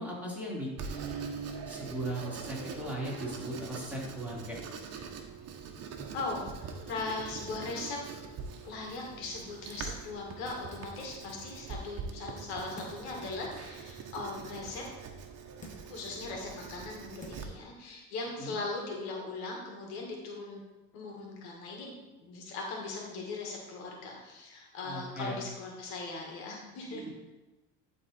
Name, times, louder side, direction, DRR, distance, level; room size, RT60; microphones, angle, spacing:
voice 1, 0.0-4.6 18.4-18.6 24.8-25.4 26.9-27.1, right 1 dB, 5° right, -5 dB, 3.1 m, -38 dB
Writing, 0.8-17.4, right 5 dB, 50° right, 1.2 m, -44 dB
voice 2, 6.1-8.0 8.6-14.8 15.9-20.6 20.9-27.1, left 3 dB, 85° left, -1 dB, 2.2 m, -39 dB
sound 1, 12.8-13.2 13.7-13.8 15.6-16.0 16.7-16.8 17.2-17.6 18.0-18.1, left 1 dB, 25° left, 1.4 m, -49 dB
11.5 x 4.2 x 4.4 m, 1.1 s
supercardioid pair, 95°, 33 cm